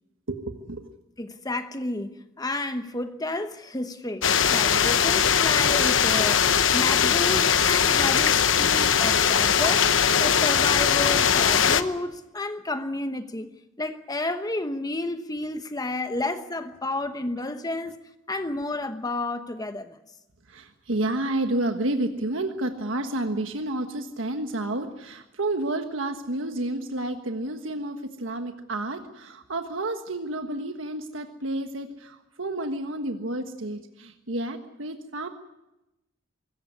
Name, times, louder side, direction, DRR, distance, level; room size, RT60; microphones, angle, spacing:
voice 1, 0.3-0.9 20.5-35.3, right 1 dB, 90° right, 1.4 m, -30 dB
voice 2, 1.2-6.4 6.7-13.5 13.8-18.0 18.3-19.9, left 2 dB, 20° left, 1.1 m, -31 dB
sound 1, 4.2-11.8, left 7 dB, 75° left, 1.0 m, -20 dB
24.5 x 14.5 x 9.6 m
head